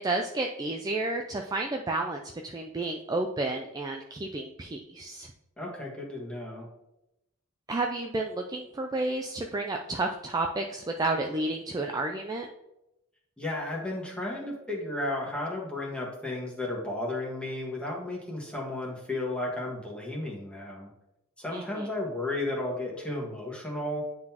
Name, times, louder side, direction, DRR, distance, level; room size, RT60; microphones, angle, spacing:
voice 1, 0.0-5.3 7.7-12.5 21.5-21.9, right 2 dB, 15° right, 2 dB, 0.3 m, -31 dB
voice 2, 5.6-6.7 13.4-20.9 21.4-24.0, left 2 dB, 5° left, -4 dB, 1.4 m, -33 dB
9.7 x 3.8 x 2.9 m, 0.89 s
head